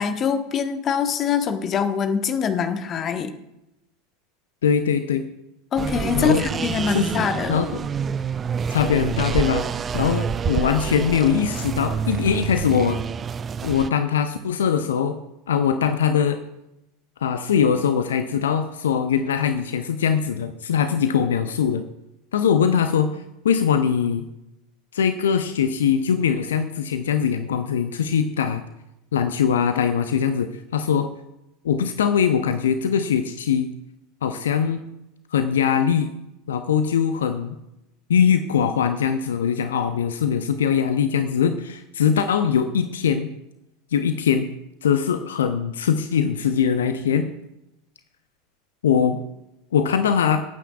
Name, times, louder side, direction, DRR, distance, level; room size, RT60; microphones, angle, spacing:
voice 1, 0.0-3.3 5.7-7.6, left 6 dB, 35° left, 8 dB, 1.2 m, -24 dB
voice 2, 4.6-5.2 6.1-6.5 6.9-7.9 8.7-9.7 9.9-13.0 13.6-15.2 15.5-16.4 17.2-21.8 22.3-24.2 24.9-28.6 29.1-31.1 31.6-33.7 34.2-34.8 35.3-36.1 36.5-37.6 38.1-43.3 43.9-44.5 44.8-47.3 48.8-49.2 49.7-50.4, left 7 dB, 70° left, 9 dB, 0.6 m, -21 dB
sound 1, 5.8-13.9, right 7 dB, 25° right, 0.4 m, -27 dB
24.5 x 9.0 x 2.4 m, 0.90 s
figure-of-eight pair, 80°, 0 cm